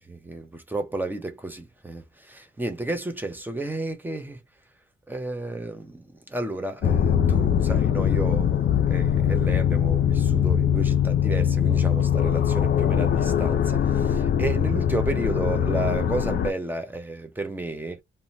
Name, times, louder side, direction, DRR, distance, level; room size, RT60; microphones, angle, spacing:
voice 1, 0.0-4.4 5.1-18.0, right 2 dB, 10° right, 0.5 m, -32 dB
sound 1, 6.8-16.5, left 9 dB, 55° left, 0.4 m, -22 dB
2.7 x 2.1 x 2.7 m
wide cardioid pair, 160°, 21 cm